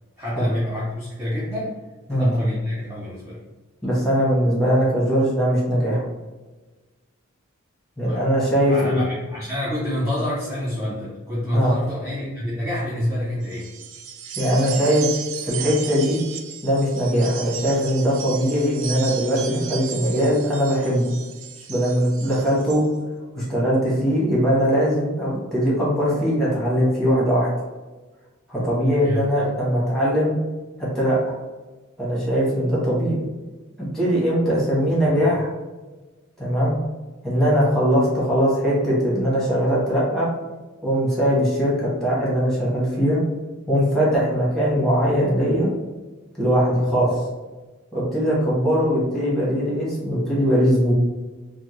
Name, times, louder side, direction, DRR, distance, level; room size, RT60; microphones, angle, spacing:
voice 1, 0.2-1.8 2.1-3.4 8.0-8.2 8.7-13.7 17.1-17.3 29.0-29.3 34.9-35.2, left 1 dB, 15° right, -8 dB, 0.6 m, -27 dB
voice 2, 3.8-6.0 8.0-9.0 11.5-11.7 14.3-15.1 15.4-16.2 16.6-21.1 21.7-22.8 23.3-27.5 28.5-30.3 30.8-31.3 32.0-33.2 33.9-35.5 36.4-36.7 37.2-40.3 40.8-43.2 43.7-45.7 46.4-47.2 47.9-50.9, equal, ahead, -7 dB, 1.1 m, -20 dB
sound 1, 13.4-22.9, right 8 dB, 65° right, 0.4 m, -35 dB
3.5 x 2.1 x 3.0 m, 1.2 s
head